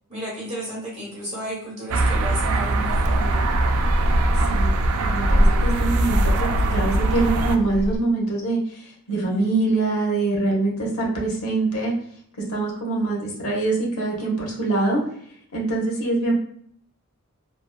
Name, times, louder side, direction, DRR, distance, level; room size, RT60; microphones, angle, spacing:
voice 1, 0.1-3.5 9.1-9.6, equal, 30° right, -6 dB, 1.1 m, -33 dB
sound 1, 1.9-7.6, right 2 dB, 80° right, 0.3 m, -23 dB
sound 2, 2.9-8.0, equal, ahead, 0.4 m, -24 dB
voice 2, 5.0-11.9 12.5-15.0 15.5-16.3, right 2 dB, 80° left, -2 dB, 0.9 m, -24 dB
2.8 x 2.2 x 2.2 m, 0.64 s
head